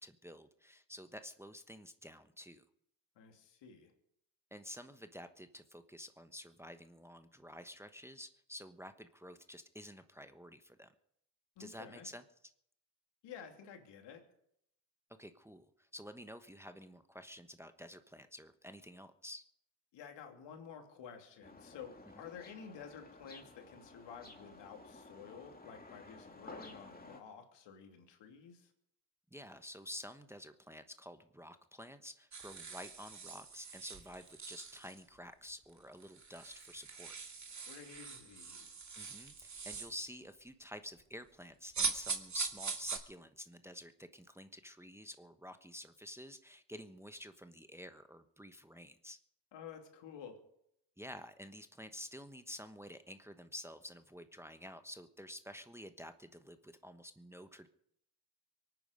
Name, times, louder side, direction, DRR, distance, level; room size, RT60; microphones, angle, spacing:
voice 1, 0.0-2.6 4.5-10.9 11.6-12.2 15.2-19.4 29.3-37.1 38.9-49.2 51.0-57.7, left 1 dB, 5° right, 9 dB, 1.1 m, -50 dB
voice 2, 3.2-3.9 11.6-12.1 13.2-14.2 19.9-28.7 37.5-38.7 49.5-50.4, left 7 dB, 70° left, 4 dB, 2.9 m, -52 dB
sound 1, 21.4-27.2, left 2 dB, 20° left, 2.6 m, -54 dB
sound 2, 32.3-35.0 35.7-35.8 36.0-40.0 41.7-43.0, right 5 dB, 40° right, 2.7 m, -42 dB
24.0 x 9.6 x 5.2 m, 0.74 s
hypercardioid pair, 55°, 45 cm